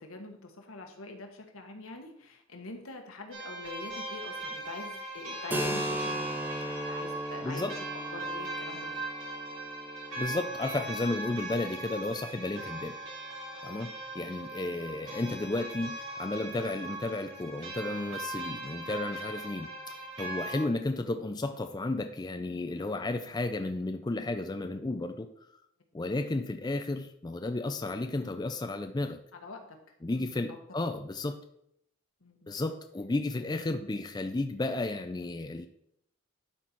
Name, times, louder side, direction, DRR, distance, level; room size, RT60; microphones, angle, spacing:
voice 1, 0.0-7.8 8.1-9.0 13.5-13.6 29.3-29.8 30.1-30.3 32.2-32.5, left 2 dB, 85° left, 3 dB, 1.4 m, -45 dB
sound 1, 3.3-20.6, right 2 dB, 70° right, 3.0 m, -39 dB
Keyboard (musical), 5.5-12.9, right 1 dB, 10° right, 0.7 m, -38 dB
voice 2, 7.4-7.8 10.2-13.0 13.6-19.7 20.2-25.3 25.9-29.2 30.0-31.4 32.5-35.7, left 2 dB, 20° left, 7 dB, 0.4 m, -33 dB
11.5 x 4.2 x 4.5 m, 0.74 s
head